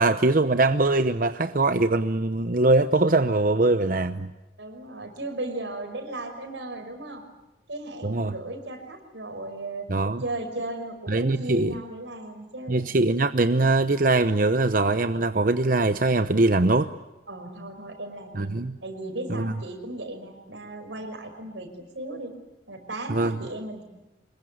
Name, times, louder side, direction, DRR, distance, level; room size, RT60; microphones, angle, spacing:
voice 1, 0.0-4.3 8.0-8.3 9.9-10.2 11.1-11.8 12.7-16.9 18.3-18.8 19.3-19.5 23.1-23.3, right 2 dB, 50° right, 10 dB, 0.8 m, -22 dB
voice 2, 4.6-7.3 7.7-9.9 10.2-12.9 17.3-18.5 18.8-22.3 22.7-23.8, right 2 dB, 90° right, 6 dB, 5.6 m, -36 dB
26.0 x 22.0 x 9.3 m, 0.99 s
head